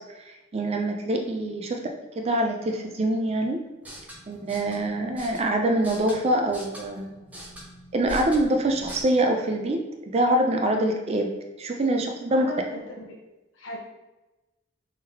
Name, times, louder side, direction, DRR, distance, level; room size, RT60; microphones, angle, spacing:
voice 1, 0.3-1.8 2.2-3.6 4.3-7.1 7.9-11.3 11.6-12.5, right 1 dB, 30° right, 3 dB, 0.3 m, -25 dB
sound 1, 3.7-9.0, equal, 10° right, 0.7 m, -43 dB
voice 2, 12.3-13.2 13.5-13.8, left 2 dB, 80° left, -2 dB, 0.8 m, -38 dB
3.7 x 3.5 x 2.7 m, 1.0 s
head